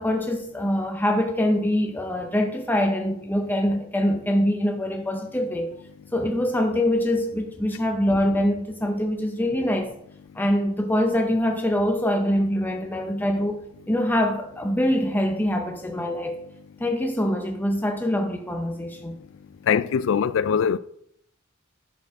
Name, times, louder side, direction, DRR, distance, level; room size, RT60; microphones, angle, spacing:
voice 1, 0.0-5.7 6.1-9.9 10.3-13.6 13.9-16.4 16.8-19.1, left 1 dB, 10° left, 0.5 m, -24 dB
voice 2, 19.6-20.8, left 7 dB, 60° left, 0.3 m, -22 dB
11.0 x 4.7 x 3.5 m
head